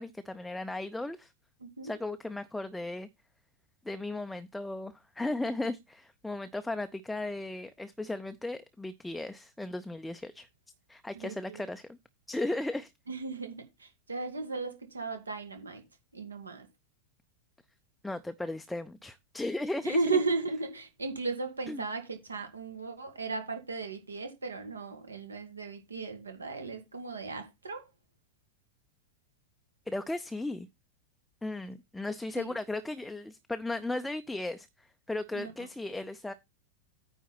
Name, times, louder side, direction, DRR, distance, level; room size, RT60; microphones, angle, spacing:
voice 1, 0.0-1.3 1.8-3.1 3.8-10.5 10.9-12.0 12.3-12.9 18.0-20.2 21.7-21.8 29.9-30.7 31.4-36.3, left 2 dB, 5° left, 0.5 m, -36 dB
voice 2, 1.6-1.9 11.1-11.7 13.1-15.8 16.1-16.7 19.8-27.8 32.4-32.5 35.3-35.5, right 3 dB, 75° right, 1.9 m, -35 dB
9.3 x 3.9 x 5.8 m
figure-of-eight pair, 90°, 0 cm